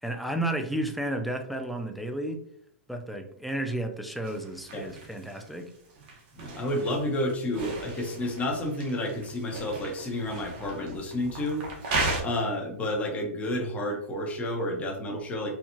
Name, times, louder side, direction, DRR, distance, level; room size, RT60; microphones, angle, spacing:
voice 1, 0.0-2.4 2.9-5.7, right 1 dB, ahead, 4 dB, 0.4 m, -32 dB
sound 1, 4.2-12.2, right 2 dB, 45° right, 1.0 m, -36 dB
voice 2, 6.3-11.6 12.2-15.5, left 1 dB, 15° left, 1 dB, 0.9 m, -30 dB
4.4 x 2.3 x 2.8 m, 0.66 s
hypercardioid pair, 145°, 8 cm